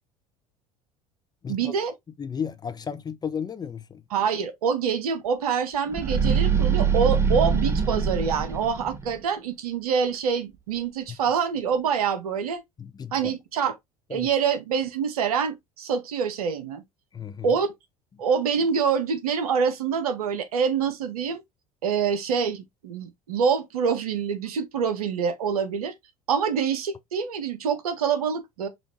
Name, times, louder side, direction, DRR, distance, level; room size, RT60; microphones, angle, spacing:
voice 1, 1.5-1.9 4.1-12.6 13.1-13.8 14.1-16.8 17.4-17.7 18.2-21.4 21.8-25.9 26.3-28.7, right 6 dB, 75° right, 0.8 m, -26 dB
voice 2, 2.2-4.0 12.8-13.1 14.1-14.3 17.1-17.5, left 7 dB, 20° left, 0.5 m, -33 dB
sound 1, 5.9-9.2, right 6 dB, 15° right, 0.8 m, -23 dB
5.0 x 2.5 x 2.8 m
figure-of-eight pair, 70°, 19 cm